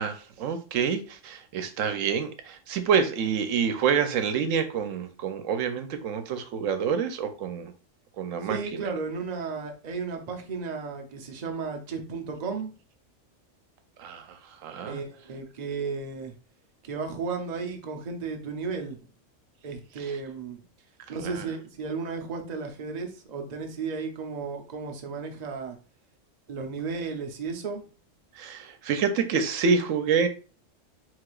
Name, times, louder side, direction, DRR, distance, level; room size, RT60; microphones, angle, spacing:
voice 1, 0.0-7.7 8.2-8.9 14.0-15.0 20.0-20.2 21.1-21.5 28.3-30.3, right 6 dB, 85° right, 1.0 m, -27 dB
voice 2, 8.4-12.7 14.9-16.3 16.8-19.0 19.6-20.6 21.1-25.8 26.5-27.8, right 4 dB, 40° right, 0.7 m, -34 dB
4.8 x 3.9 x 2.4 m
omnidirectional pair, 1.3 m